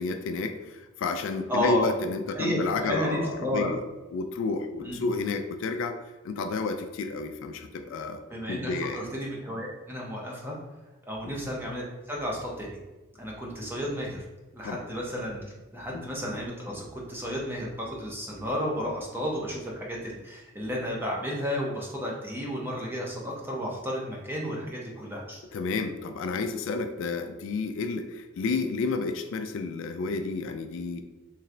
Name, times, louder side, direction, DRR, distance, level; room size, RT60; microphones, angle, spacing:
voice 1, 0.0-3.8 4.1-6.0 6.2-8.2 8.5-9.1 11.2-11.3 14.6-14.8 15.9-16.1 25.5-31.0, left 3 dB, 60° left, 8 dB, 0.3 m, -31 dB
voice 2, 1.5-1.9 2.3-3.7 4.8-5.0 8.3-10.6 11.1-12.8 13.2-14.2 14.5-25.4, equal, 10° right, -3 dB, 0.8 m, -32 dB
3.2 x 3.1 x 3.7 m, 1.1 s
head